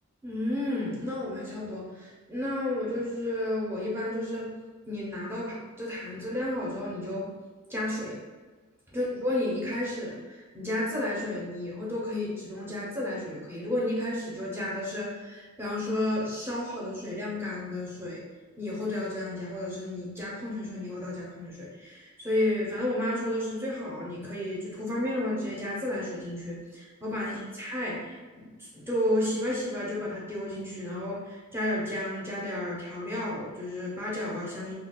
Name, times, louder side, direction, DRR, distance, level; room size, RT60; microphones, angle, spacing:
voice 1, 0.2-4.5 4.9-7.3 7.7-8.2 8.9-18.2 18.6-34.7, left 1 dB, 10° right, -5 dB, 0.7 m, -32 dB
2.3 x 2.3 x 3.7 m, 1.3 s
head